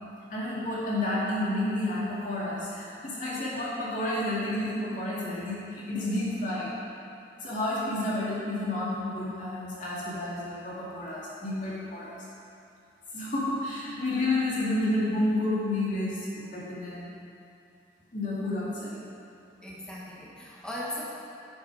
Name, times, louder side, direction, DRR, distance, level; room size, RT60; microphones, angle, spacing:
voice 1, 0.3-6.7 7.4-12.3 13.1-17.0 18.1-19.0, left 1 dB, 45° left, -7 dB, 2.6 m, -30 dB
voice 2, 19.6-21.0, left 1 dB, 5° left, -6 dB, 1.3 m, -38 dB
10.0 x 7.5 x 4.9 m, 2.6 s
head